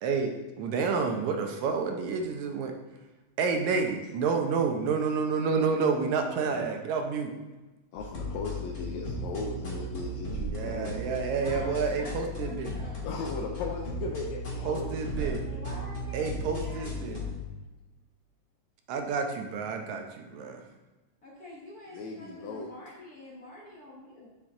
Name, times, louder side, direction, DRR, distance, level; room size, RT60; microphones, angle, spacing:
voice 1, 0.0-0.3 0.6-2.7 3.4-7.3 10.3-12.7 14.7-15.4 16.1-17.2 18.9-20.6, right 5 dB, 75° right, 4 dB, 2.1 m, -29 dB
voice 2, 6.4-6.7 7.9-11.1 13.0-15.6 21.9-22.7, left 3 dB, 80° left, -1 dB, 1.9 m, -37 dB
sound 1, 8.0-17.4, equal, 30° left, 1.7 m, -36 dB
voice 3, 11.3-12.1 12.4-13.0 15.4-17.4 21.2-24.3, left 1 dB, 55° left, -5 dB, 1.0 m, -46 dB
7.8 x 5.7 x 3.7 m, 1.2 s
omnidirectional pair, 3.4 m